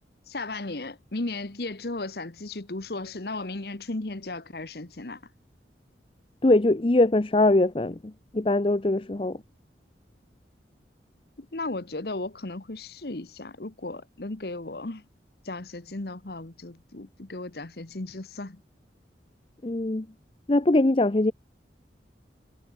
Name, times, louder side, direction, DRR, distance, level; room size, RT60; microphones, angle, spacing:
voice 1, 0.3-5.2 11.4-15.0 15.4-18.6, left 2 dB, 60° left, 1.2 m, -35 dB
voice 2, 6.4-9.4 19.6-20.1 20.5-21.3, left 2 dB, 30° left, 0.6 m, -22 dB
head